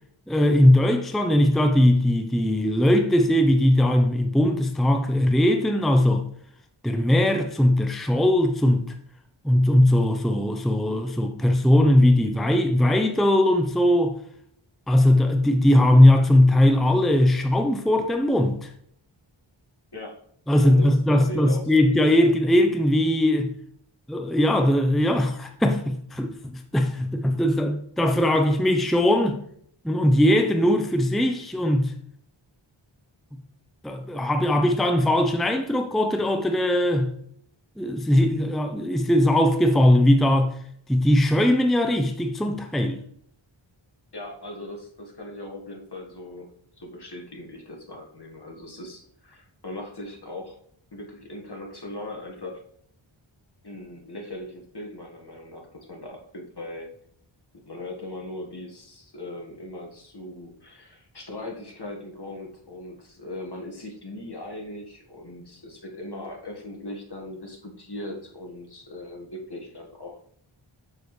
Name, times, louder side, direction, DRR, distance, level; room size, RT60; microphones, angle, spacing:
voice 1, 0.3-6.2 6.8-8.8 9.4-14.2 14.9-18.7 20.5-23.5 24.1-29.4 29.8-31.9 33.8-37.1 37.8-40.5 40.9-43.0, left 1 dB, ahead, 0.7 m, -20 dB
voice 2, 19.9-20.2 20.6-21.8 44.1-50.6 50.9-52.6 53.6-56.9 57.7-70.2, left 1 dB, 50° left, 1.8 m, -39 dB
7.0 x 6.7 x 3.2 m
wide cardioid pair, 45°, 49 cm